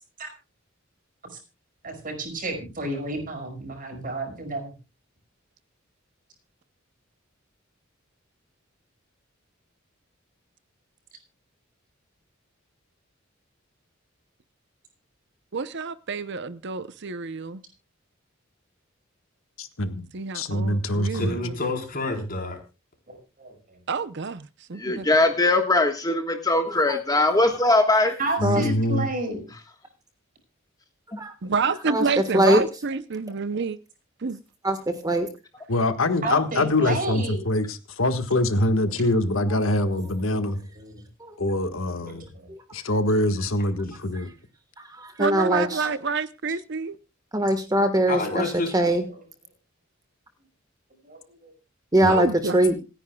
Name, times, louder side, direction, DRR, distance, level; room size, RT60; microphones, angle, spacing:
voice 1, 1.8-4.7 23.1-23.5 28.2-29.4 36.2-37.4 39.6-41.0 41.9-42.5 51.0-51.5, right 2 dB, 45° right, 5.6 m, -32 dB
voice 2, 15.5-17.6 20.1-21.6 23.9-25.1 31.4-33.8 34.2-34.4 45.2-47.0 52.1-52.6, right 5 dB, 60° right, 0.7 m, -28 dB
voice 3, 19.6-20.1 20.3-21.4 28.4-29.1 35.7-40.6 41.4-42.3 42.7-44.3 52.0-52.1, left 1 dB, 80° left, 1.6 m, -24 dB
voice 4, 21.1-22.6 48.1-48.8, left 2 dB, 45° left, 4.1 m, -28 dB
voice 5, 24.8-28.1 31.1-31.2, left 2 dB, 20° left, 1.5 m, -21 dB
voice 6, 34.6-35.3 41.2-41.3 42.5-42.6 44.8-45.9 47.3-48.4 48.7-49.0 51.9-52.3 52.5-52.8, right 1 dB, 20° right, 1.4 m, -21 dB
27.0 x 10.0 x 2.3 m
head